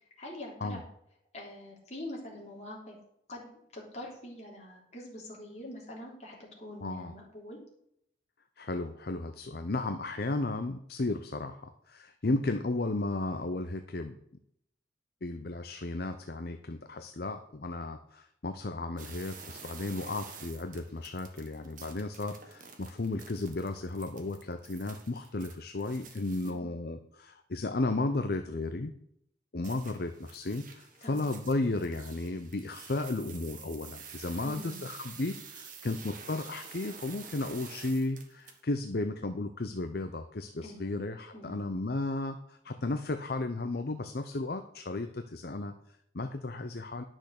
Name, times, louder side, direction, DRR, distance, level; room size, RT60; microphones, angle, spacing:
voice 1, 0.2-0.8 1.3-3.0 3.3-7.6 12.2-12.3 26.4-26.7 31.0-31.3 34.4-34.8 40.6-41.0 41.3-41.6, left 1 dB, 35° left, -3 dB, 3.3 m, -44 dB
voice 2, 6.8-7.1 8.6-14.1 15.2-28.9 29.5-47.0, left 2 dB, 55° left, 7 dB, 0.7 m, -34 dB
sound 1, 19.0-26.5 29.6-38.6, right 6 dB, 45° right, 1.6 m, -49 dB
10.5 x 6.3 x 6.6 m, 0.74 s
head